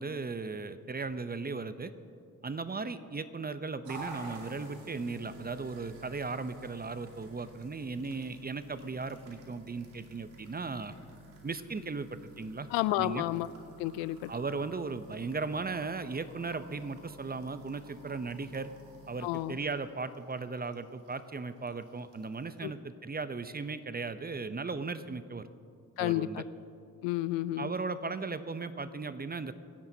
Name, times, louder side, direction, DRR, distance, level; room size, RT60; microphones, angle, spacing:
voice 1, 0.0-1.9 2.4-10.9 11.4-12.7 13.0-13.2 14.3-18.7 19.1-25.5 26.0-26.4 27.6-29.5, right 4 dB, 20° right, 12 dB, 0.8 m, -37 dB
sound 1, 3.8-22.6, right 2 dB, 80° right, 2.4 m, -51 dB
voice 2, 12.7-13.5 13.8-14.3 19.2-19.6 22.6-22.7 26.0-26.4 27.0-27.7, left 16 dB, 75° left, 17 dB, 0.5 m, -31 dB
26.0 x 10.5 x 2.9 m, 2.5 s
hypercardioid pair, 50°, 45 cm